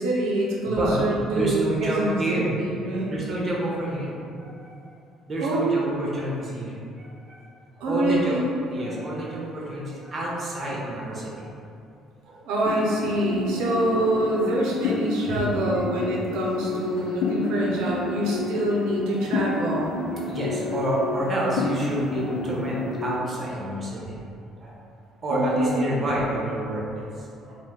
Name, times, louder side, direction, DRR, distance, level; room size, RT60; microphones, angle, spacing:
voice 1, 0.0-3.1 5.4-5.9 7.8-8.5 12.4-19.9 25.3-26.1, right 1 dB, 75° right, -3 dB, 0.6 m, -25 dB
voice 2, 0.7-1.0 1.3-2.6 3.1-4.1 4.4-4.8 5.3-7.4 7.8-8.4 8.7-11.5 12.2-12.4 15.3-15.4 18.3-18.4 19.1-19.5 20.1-24.1 24.6-24.7 25.2-26.8 27.4-27.6, right 1 dB, 40° right, -5 dB, 0.8 m, -29 dB
sound 1, 12.7-23.2, left 3 dB, 70° left, 0.3 m, -30 dB
2.7 x 2.1 x 3.5 m, 2.5 s
hypercardioid pair, 60°, 0 cm